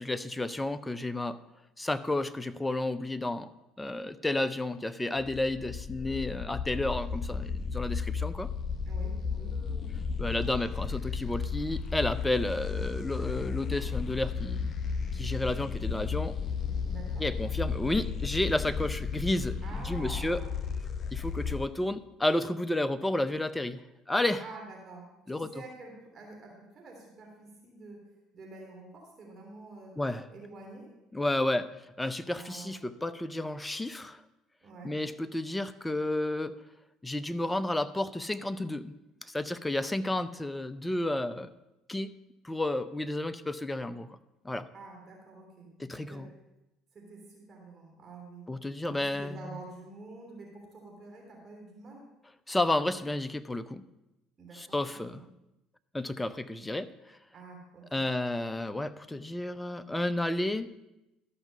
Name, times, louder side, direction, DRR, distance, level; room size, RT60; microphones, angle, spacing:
voice 1, 0.0-1.4 1.8-3.5 3.8-8.5 10.2-14.7 15.1-16.4 17.2-20.4 21.1-23.8 24.1-24.4 25.3-25.5 30.0-30.3 31.1-31.7 32.0-34.2 34.8-36.6 37.0-38.9 39.2-41.5 41.9-42.1 42.4-44.2 44.4-44.7 45.8-46.3 48.5-49.4 52.5-53.8 54.5-55.2 55.9-57.2 57.9-60.7, left 1 dB, 10° left, 13 dB, 0.6 m, -31 dB
sound 1, 5.2-21.7, left 5 dB, 40° left, 0.8 m, -34 dB
voice 2, 8.8-9.5 16.8-17.2 19.6-20.6 24.4-28.0 28.3-29.9 30.3-30.9 32.3-32.9 34.6-34.9 44.7-46.2 46.9-48.5 48.8-52.0 54.4-55.2 57.3-58.0, right 3 dB, 40° right, -1 dB, 3.3 m, -48 dB
13.0 x 5.8 x 5.5 m, 0.94 s
hypercardioid pair, 65°, 0 cm